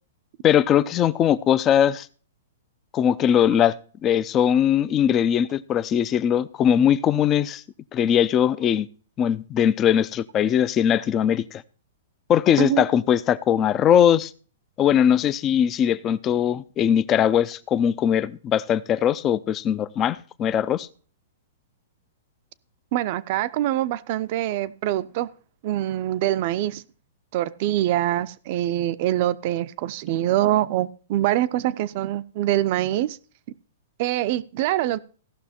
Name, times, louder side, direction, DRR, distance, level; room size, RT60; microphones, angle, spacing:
voice 1, 0.4-2.1 2.9-3.7 4.0-7.6 7.9-8.9 9.2-11.6 12.3-14.3 14.8-20.9, left 9 dB, 20° left, 0.5 m, -20 dB
voice 2, 22.9-25.3 25.6-26.8 27.3-33.2 34.0-35.0, right 13 dB, 45° right, 0.6 m, -24 dB
16.5 x 6.2 x 4.3 m
hypercardioid pair, 155°, 0 cm